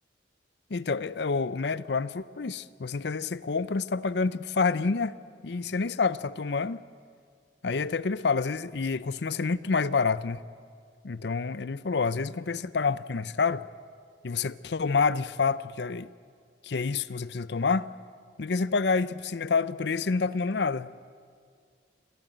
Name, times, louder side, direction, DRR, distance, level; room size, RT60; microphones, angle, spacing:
voice 1, 0.7-5.1 5.4-6.8 7.6-10.4 11.0-13.7 14.2-16.1 16.6-17.9 18.4-20.9, left 4 dB, 60° left, 0.6 m, -28 dB
26.0 x 16.0 x 9.0 m
head